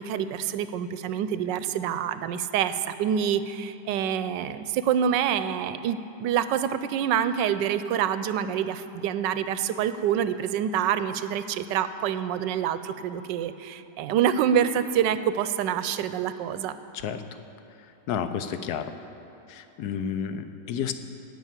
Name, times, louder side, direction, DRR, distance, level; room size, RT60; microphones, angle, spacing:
voice 1, 0.0-16.8, right 9 dB, 80° right, 12 dB, 1.2 m, -26 dB
voice 2, 18.1-18.9 19.5-20.9, left 8 dB, 70° left, 10 dB, 1.1 m, -31 dB
17.5 x 5.9 x 7.4 m, 3.0 s
omnidirectional pair, 1.9 m